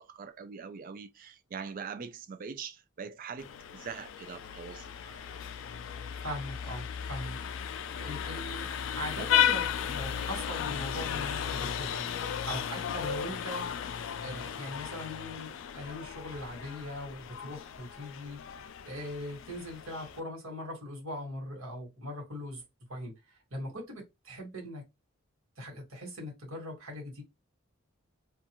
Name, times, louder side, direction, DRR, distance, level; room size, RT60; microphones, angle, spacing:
voice 1, 0.0-5.4, right 6 dB, 40° right, 0.4 m, -43 dB
Vehicle horn car horn honking, 3.4-20.2, left 9 dB, 65° left, 0.3 m, -35 dB
voice 2, 6.2-12.0 12.4-13.7 14.2-18.4 18.9-22.6 22.9-24.8 25.6-27.2, left 1 dB, 80° right, 1.5 m, -41 dB
2.5 x 2.2 x 2.9 m
head